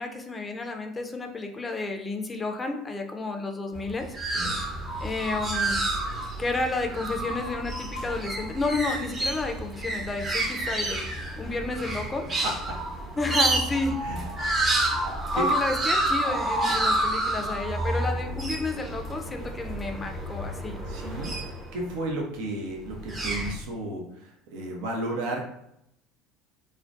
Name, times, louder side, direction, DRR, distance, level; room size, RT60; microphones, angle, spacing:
voice 1, 0.0-4.1 5.0-5.8 6.4-11.1 11.4-12.3 13.2-14.0 15.3-20.8, left 3 dB, 25° left, 4 dB, 0.4 m, -31 dB
sound 1, 3.7-21.9 22.8-23.5, right 1 dB, 30° right, 0.7 m, -29 dB
voice 2, 12.4-12.8 14.0-14.2 15.3-15.4 20.9-21.3 21.7-25.5, right 1 dB, 65° right, 0 dB, 0.5 m, -33 dB
2.3 x 2.1 x 2.5 m, 0.78 s
hypercardioid pair, 70°, 0 cm